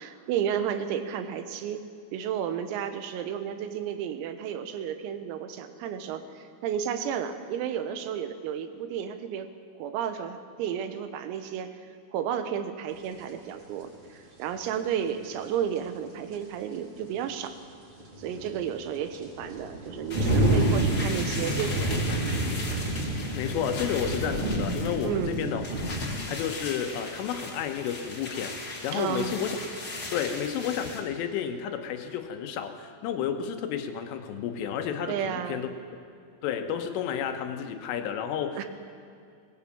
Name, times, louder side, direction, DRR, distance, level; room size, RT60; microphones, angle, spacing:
voice 1, 0.0-1.8 2.1-9.5 9.8-11.8 12.1-17.6 18.2-22.3 25.0-25.4 28.9-29.3 35.1-35.7 38.6-38.7, right 8 dB, 85° right, 9 dB, 4.0 m, -32 dB
sound 1, 13.2-13.3 15.8-15.9 16.3-16.4 18.0-26.2, right 1 dB, 25° right, 4.8 m, -28 dB
sound 2, 20.1-31.0, left 2 dB, 30° left, 1.8 m, -38 dB
voice 2, 23.4-26.0 26.3-29.6 30.1-35.7 36.4-38.7, left 8 dB, 80° left, 7 dB, 3.6 m, -31 dB
20.0 x 19.0 x 8.7 m, 2.4 s
omnidirectional pair, 6.0 m